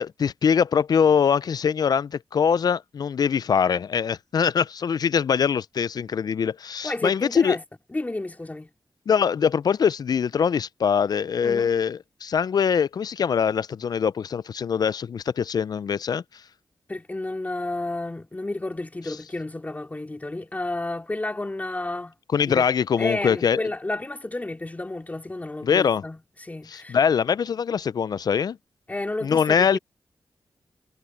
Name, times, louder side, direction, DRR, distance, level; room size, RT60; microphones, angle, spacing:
voice 1, 0.0-7.6 9.1-16.2 22.3-23.6 25.6-26.0 26.7-28.6 29.2-29.8, left 7 dB, 60° left, 0.4 m, -23 dB
voice 2, 6.8-7.6 7.9-8.7 11.4-11.7 16.9-22.1 22.4-22.7 23.0-27.0 28.9-29.8, left 2 dB, 20° left, 2.6 m, -31 dB
cardioid pair, 80°, 8 cm